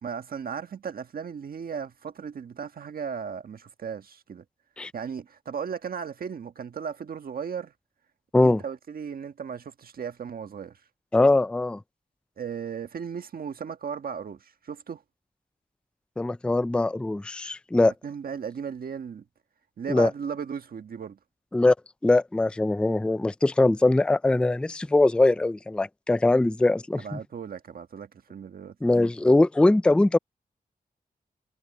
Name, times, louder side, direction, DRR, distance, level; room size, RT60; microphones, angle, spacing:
voice 1, 0.0-4.4 4.9-7.7 8.4-10.8 12.4-15.0 18.0-19.2 19.8-21.2 26.9-28.8, right 7 dB, 65° right, 1.4 m, -36 dB
voice 2, 11.1-11.8 16.2-17.9 19.9-20.1 21.5-21.7 22.0-27.2 28.8-30.2, left 2 dB, 5° left, 0.3 m, -21 dB
wide cardioid pair, 165°, 16 cm